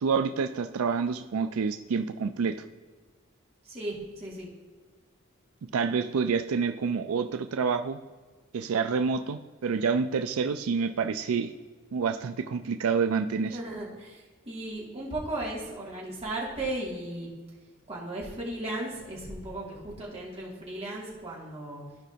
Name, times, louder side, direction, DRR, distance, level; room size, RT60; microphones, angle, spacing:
voice 1, 0.0-2.6 5.7-8.0 8.5-11.5 11.9-13.6, right 5 dB, 90° right, 9 dB, 0.4 m, -28 dB
voice 2, 3.6-4.5 13.5-17.3 17.9-21.8, right 1 dB, 30° right, -5 dB, 2.4 m, -36 dB
15.0 x 5.0 x 2.8 m, 1.4 s
head